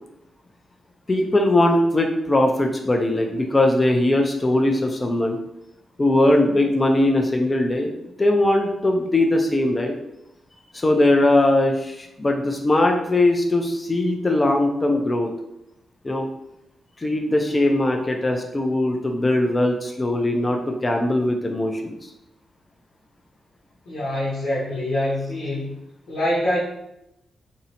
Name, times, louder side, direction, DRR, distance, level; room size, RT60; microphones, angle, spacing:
voice 1, 1.1-5.4 6.0-7.9 8.2-9.9 10.7-15.3 16.0-16.3 17.0-21.9, left 1 dB, 30° left, 3 dB, 0.3 m, -20 dB
voice 2, 23.8-25.7 26.1-26.6, left 1 dB, 75° left, -9 dB, 0.9 m, -24 dB
2.6 x 2.1 x 2.7 m, 0.84 s
supercardioid pair, 55°, 0 cm